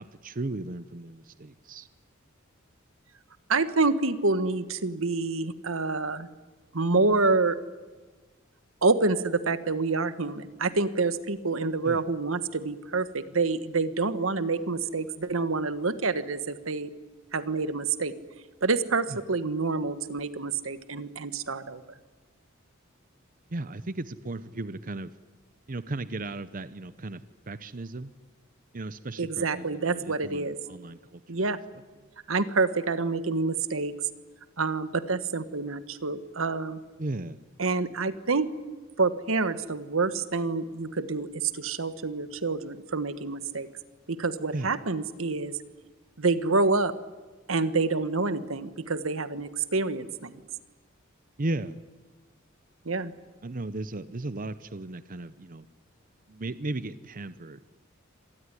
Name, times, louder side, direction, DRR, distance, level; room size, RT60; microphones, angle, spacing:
voice 1, 0.0-1.9 11.9-12.0 23.5-25.1 25.7-28.1 28.7-31.2 37.0-37.4 44.5-44.8 51.4-51.8 53.4-55.7 56.3-57.6, right 2 dB, 45° right, 14 dB, 0.8 m, -36 dB
voice 2, 3.5-6.3 6.7-7.6 8.8-16.9 17.3-18.1 18.6-21.8 29.2-30.6 31.3-31.6 32.3-33.9 34.6-36.8 37.6-38.5 39.0-43.7 44.1-45.5 46.2-46.9 47.5-50.4 52.8-53.1, right 3 dB, 90° right, 12 dB, 1.5 m, -27 dB
26.0 x 19.0 x 9.9 m, 1.3 s
head